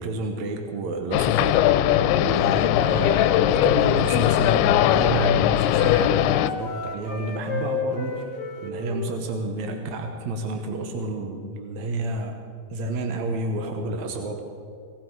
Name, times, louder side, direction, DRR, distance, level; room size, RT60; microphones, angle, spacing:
voice 1, 0.0-1.8 2.1-8.3 8.6-12.4 12.7-14.4, right 2 dB, 70° right, 4 dB, 1.7 m, -30 dB
sound 1, 1.1-6.5, left 12 dB, 85° left, 2.5 m, -20 dB
Wind instrument woodwind instrument, 2.1-5.4 5.7-9.1, left 6 dB, 35° left, 1.0 m, -33 dB
19.0 x 16.5 x 4.7 m, 2.3 s
omnidirectional pair, 4.7 m